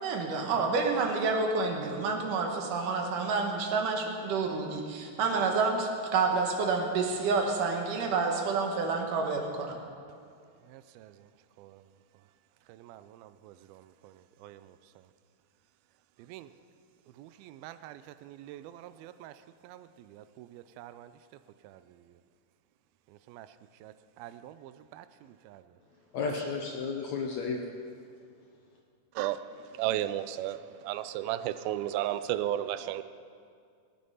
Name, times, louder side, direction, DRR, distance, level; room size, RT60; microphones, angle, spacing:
voice 1, 0.0-9.8, right 4 dB, 70° right, 3 dB, 2.6 m, -29 dB
voice 2, 10.7-11.1 11.6-11.8 12.7-14.1 14.4-14.8 16.3-16.5 17.2-19.3 19.6-21.1 21.6-21.8 23.3-23.5 23.8-25.1 25.4-25.6 29.2-29.4 29.7-33.0, right 13 dB, 85° right, 13 dB, 2.4 m, -36 dB
voice 3, 26.1-27.7, left 4 dB, 70° left, 1 dB, 1.8 m, -33 dB
19.0 x 9.6 x 5.6 m, 2.3 s
omnidirectional pair, 4.2 m